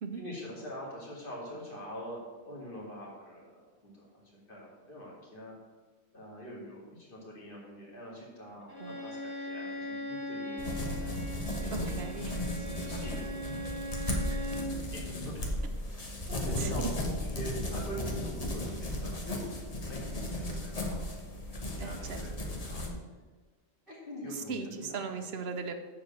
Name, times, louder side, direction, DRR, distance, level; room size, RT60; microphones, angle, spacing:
voice 1, 0.1-3.5 3.8-5.6 6.1-11.1 11.6-12.0 12.3-13.6 14.9-19.5 19.8-21.2 21.6-22.9 23.9-25.3, equal, 55° left, -5 dB, 2.7 m, -45 dB
Bowed string instrument, 8.7-14.8, equal, 20° right, 1.2 m, -39 dB
sound 1, 10.6-22.9, left 1 dB, 35° left, 1.2 m, -35 dB
voice 2, 11.7-12.4 14.1-14.4 16.6-16.9 21.8-22.2 24.5-25.7, right 5 dB, 70° right, 8 dB, 0.9 m, -38 dB
6.9 x 5.0 x 7.0 m, 1.4 s
omnidirectional pair, 1.1 m